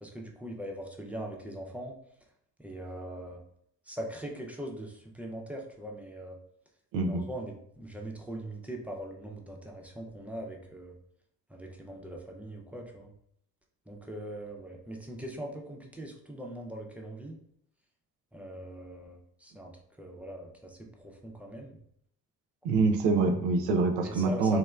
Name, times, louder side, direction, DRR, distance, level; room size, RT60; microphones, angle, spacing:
voice 1, 0.0-1.9 2.6-3.4 3.9-6.4 7.0-11.0 11.5-13.1 13.9-17.4 18.3-19.7 20.0-21.8 24.0-24.6, right 1 dB, 5° right, 0 dB, 0.4 m, -41 dB
voice 2, 6.9-7.3 22.6-24.6, right 3 dB, 65° right, 6 dB, 0.6 m, -25 dB
2.9 x 2.0 x 2.3 m, 0.71 s
hypercardioid pair, 45°, 46 cm